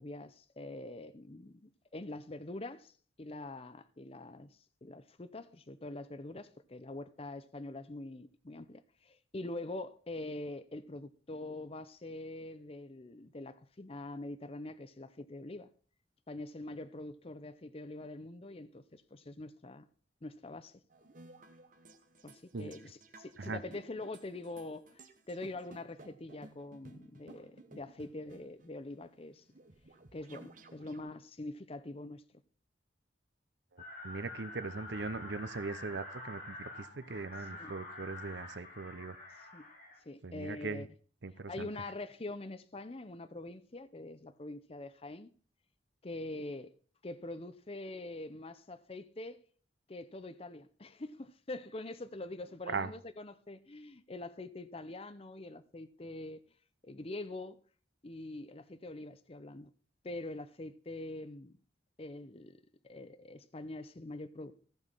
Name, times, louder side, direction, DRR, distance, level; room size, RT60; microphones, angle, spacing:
voice 1, 0.0-2.9 3.2-15.7 16.3-19.9 20.2-20.8 22.2-29.4 30.1-32.2 37.4-37.7 39.5-39.7 40.0-40.9 41.5-45.3 46.0-46.7 47.0-49.4 49.9-56.4 56.8-57.6 58.0-59.7 60.0-61.6 62.0-64.5, left 2 dB, 30° left, 0.7 m, -44 dB
sound 1, 20.9-31.0, right 2 dB, 45° right, 1.2 m, -56 dB
sound 2, 33.8-40.0, left 2 dB, 50° left, 3.7 m, -47 dB
voice 2, 33.8-39.2 40.2-40.8 41.2-41.7 52.7-52.9, right 4 dB, 70° right, 0.7 m, -40 dB
15.0 x 6.3 x 5.5 m
head